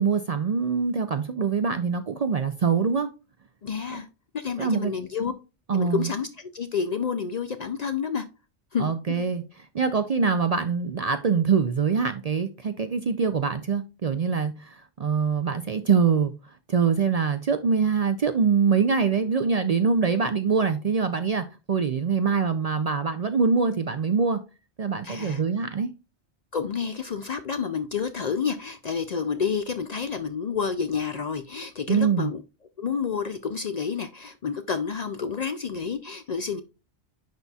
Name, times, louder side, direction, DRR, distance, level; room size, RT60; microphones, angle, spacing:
voice 1, 0.0-3.1 3.9-4.0 4.6-4.9 5.7-6.1 8.8-9.4 9.7-24.4 24.8-25.9 31.9-32.3, right 5 dB, 50° right, 0.5 m, -24 dB
voice 2, 3.6-4.1 4.3-5.3 5.7-8.3 8.7-9.2 25.0-25.4 26.5-32.4 32.8-36.6, left 6 dB, 50° left, 0.5 m, -29 dB
10.5 x 4.1 x 2.3 m
omnidirectional pair, 1.1 m